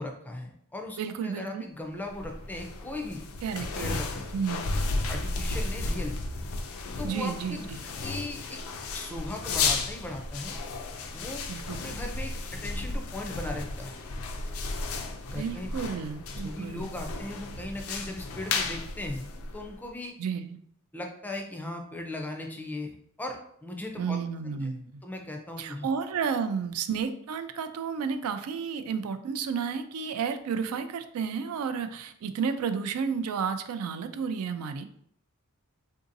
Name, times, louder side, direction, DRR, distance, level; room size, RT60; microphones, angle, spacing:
voice 1, 0.0-3.2 3.7-4.3 5.1-6.2 7.0-7.7 8.0-8.6 8.9-10.6 11.1-11.4 11.8-12.3 12.6-14.0 15.3-15.7 16.3-19.3 19.5-20.2 20.9-24.2 24.4-24.6 25.0-25.9, left 1 dB, 10° left, 2 dB, 0.4 m, -38 dB
voice 2, 1.0-1.6 3.4-4.0 4.3-4.7 7.0-7.8 11.5-11.8 15.4-16.9 20.2-20.6 24.0-25.0 25.6-34.9, right 6 dB, 85° right, 9 dB, 0.3 m, -32 dB
sound 1, 2.0-19.9, left 3 dB, 75° left, 0.4 m, -34 dB
3.7 x 2.7 x 2.5 m, 0.68 s
head